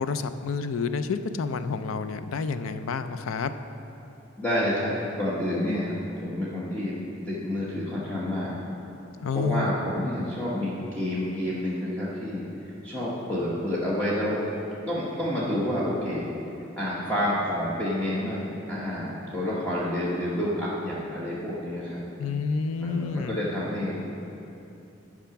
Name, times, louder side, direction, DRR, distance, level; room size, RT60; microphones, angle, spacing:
voice 1, 0.0-3.5 9.2-9.7 22.2-23.4, left 5 dB, 90° left, 11 dB, 0.4 m, -29 dB
voice 2, 4.4-6.9 7.3-8.6 9.3-12.5 12.8-14.5 14.9-16.3 16.8-22.0 22.8-24.0, left 1 dB, 5° left, -9 dB, 1.0 m, -29 dB
10.5 x 5.0 x 5.8 m, 2.8 s
head